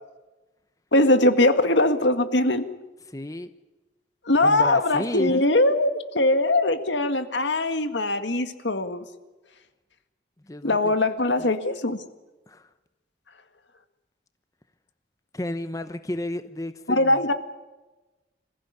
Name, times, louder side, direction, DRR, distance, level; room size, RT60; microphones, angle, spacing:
voice 1, 0.9-2.6 4.3-9.0 10.6-12.0 16.9-17.3, left 2 dB, 75° left, 1.8 m, -21 dB
voice 2, 3.1-3.5 4.4-5.6 10.5-10.9 11.4-11.5 12.5-12.7 15.3-17.3, left 1 dB, 20° left, 0.8 m, -32 dB
26.5 x 15.5 x 9.7 m
head